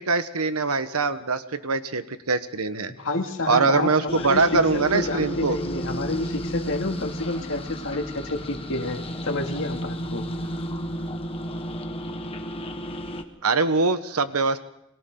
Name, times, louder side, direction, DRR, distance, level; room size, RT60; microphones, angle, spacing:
voice 1, 0.0-2.9 3.5-5.6 13.4-14.6, right 4 dB, 80° right, 10 dB, 1.3 m, -23 dB
voice 2, 3.0-4.6 4.9-10.3, left 2 dB, 65° left, 3 dB, 2.6 m, -29 dB
sound 1, 4.1-13.2, equal, 25° left, 1.5 m, -32 dB
30.0 x 22.5 x 4.0 m, 0.81 s
head